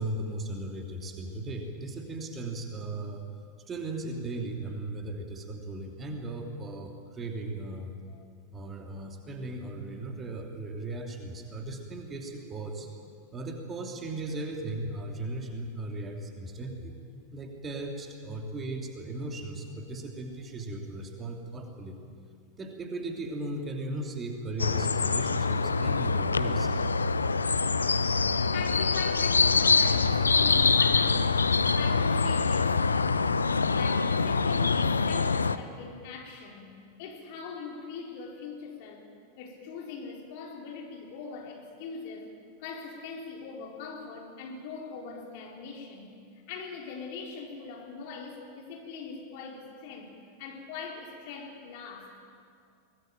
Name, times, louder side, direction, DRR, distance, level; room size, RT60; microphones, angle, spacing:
voice 1, 0.0-3.3 3.7-7.9 8.5-12.9 13.3-16.9 17.3-22.0 22.6-26.7, right 2 dB, 20° right, 2 dB, 2.9 m, -37 dB
sound 1, 24.6-35.6, left 4 dB, 75° left, 0.7 m, -25 dB
voice 2, 28.4-32.8 33.8-36.7 37.0-39.1 39.4-42.3 42.6-50.1 50.4-52.2, left 5 dB, 50° left, 1 dB, 4.3 m, -41 dB
23.0 x 20.0 x 9.1 m, 2.2 s
figure-of-eight pair, 90°, 0 cm